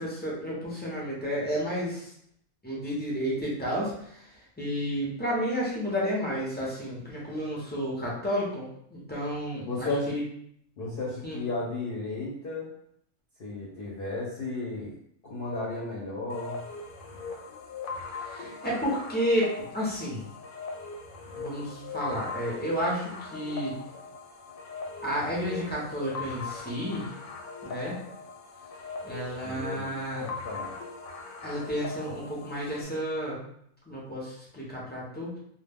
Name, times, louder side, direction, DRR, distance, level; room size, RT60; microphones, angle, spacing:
voice 1, 0.0-2.1 2.6-10.2 11.2-11.4 18.2-20.2 21.4-23.7 25.0-27.1 27.6-28.0 29.0-30.3 31.4-33.4 33.9-35.3, equal, 15° left, -6 dB, 0.3 m, -31 dB
voice 2, 9.7-10.2 10.8-12.7 13.4-14.9 15.2-16.6 18.4-18.5 29.4-29.9 30.2-30.7, left 2 dB, 55° left, -6 dB, 0.7 m, -34 dB
sound 1, 16.3-32.8, left 4 dB, 85° left, 1.0 m, -40 dB
2.2 x 2.1 x 3.4 m, 0.69 s
omnidirectional pair, 1.4 m